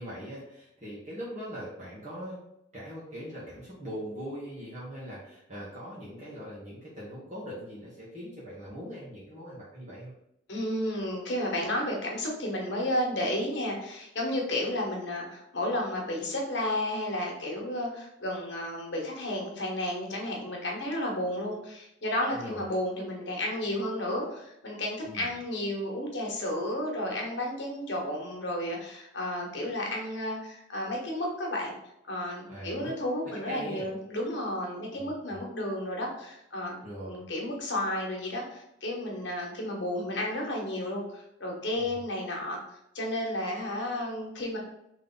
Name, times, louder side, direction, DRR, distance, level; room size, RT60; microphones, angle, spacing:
voice 1, 0.0-2.4 2.7-10.1 22.3-22.7 25.0-25.3 32.5-32.9 33.4-33.9 35.0-35.4 36.8-37.2 41.8-41.9, equal, 40° right, -8 dB, 1.2 m, -41 dB
voice 2, 10.5-31.7 32.1-36.8 37.1-42.6 42.9-44.6, left 1 dB, 70° left, -1 dB, 1.3 m, -32 dB
3.6 x 3.2 x 3.9 m, 0.80 s
head